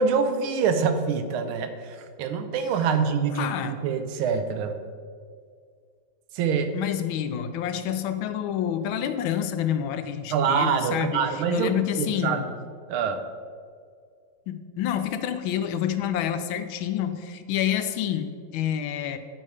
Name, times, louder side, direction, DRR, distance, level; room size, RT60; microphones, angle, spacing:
voice 1, 0.0-4.7 6.3-6.7 10.3-11.7 12.0-12.5 12.9-13.2, right 6 dB, 85° right, 8 dB, 1.5 m, -25 dB
voice 2, 3.4-3.8 6.7-11.3 11.5-12.5 14.5-19.2, left 10 dB, 80° left, 9 dB, 1.4 m, -28 dB
9.1 x 5.4 x 4.8 m, 2.1 s
omnidirectional pair, 2.2 m